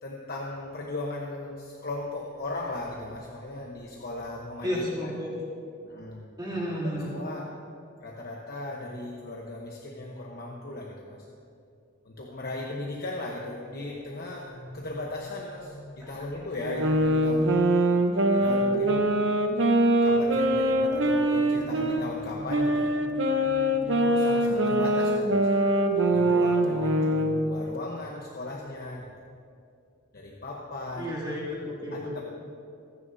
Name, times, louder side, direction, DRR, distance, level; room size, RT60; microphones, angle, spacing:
voice 1, 0.0-5.1 5.9-6.3 6.8-7.5 8.0-11.3 12.0-25.5 26.0-29.1 30.1-31.2 31.9-32.2, left 2 dB, 50° left, -2 dB, 1.1 m, -37 dB
voice 2, 4.6-5.3 6.4-7.1 31.0-32.2, equal, 20° right, -7 dB, 2.8 m, -32 dB
sound 1, 16.6-22.0 22.5-27.4, right 1 dB, 70° right, 0.9 m, -23 dB
25.0 x 9.6 x 2.8 m, 2.4 s
head